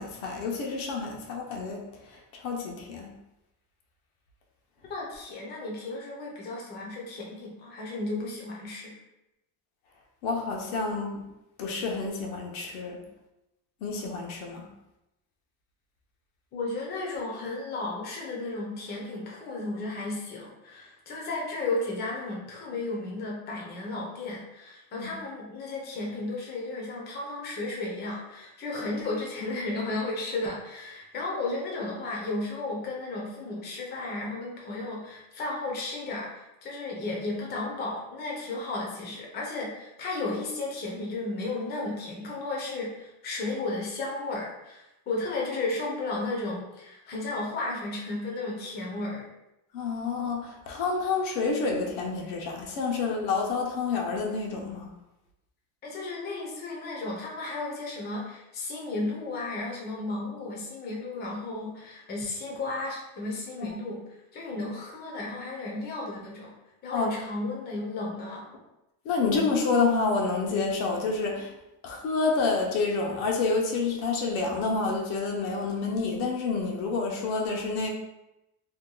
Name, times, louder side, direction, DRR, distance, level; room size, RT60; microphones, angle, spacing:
voice 1, 0.0-3.1 10.2-11.2 11.6-13.0 13.8-14.7 25.0-25.1 49.7-54.9 63.6-63.8 66.9-67.1 69.0-71.5 71.8-77.9, left 4 dB, 90° left, 0 dB, 0.9 m, -28 dB
voice 2, 4.8-9.0 16.5-49.3 55.8-66.5 66.8-68.4, left 2 dB, 25° left, -2 dB, 0.5 m, -34 dB
2.8 x 2.3 x 3.7 m, 0.92 s
cardioid pair, 165°, 44 cm